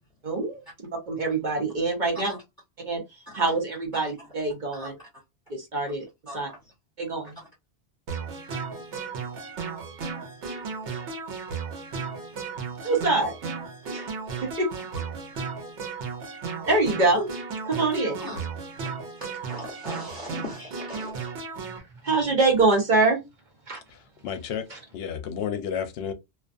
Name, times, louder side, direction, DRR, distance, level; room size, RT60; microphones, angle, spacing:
voice 1, 0.2-0.6 1.1-2.4 2.8-4.9 5.5-6.0 6.3-6.5 7.0-7.4 12.8-13.4 13.9-14.1 14.4-14.7 16.6-17.3 17.6-18.2 21.6-21.7 22.0-23.2 23.7-23.8 24.7-24.8, right 3 dB, 50° right, 0.8 m, -24 dB
voice 2, 6.3-6.6 18.2-18.4 18.8-18.9 19.2-21.1, left 1 dB, 20° left, 1.2 m, -39 dB
sound 1, 8.1-21.8, right 5 dB, 85° right, 1.0 m, -35 dB
voice 3, 24.2-24.7 24.9-26.1, left 8 dB, 70° left, 0.8 m, -31 dB
2.4 x 2.3 x 2.5 m
omnidirectional pair, 1.1 m